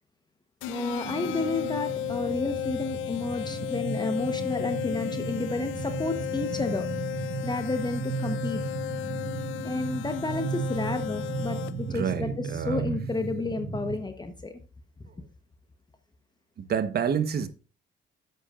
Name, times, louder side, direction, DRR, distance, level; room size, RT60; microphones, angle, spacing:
sound 1, 0.6-12.0, left 13 dB, 85° left, 0.5 m, -35 dB
voice 1, 0.6-6.9 7.4-8.6 9.6-14.6, left 3 dB, 20° left, 1.0 m, -31 dB
sound 2, 1.0-14.0, right 4 dB, 80° right, 3.4 m, -35 dB
voice 2, 11.9-13.0 16.6-17.5, right 7 dB, 55° right, 1.1 m, -28 dB
10.5 x 8.1 x 2.4 m
cardioid pair, 90°, 20 cm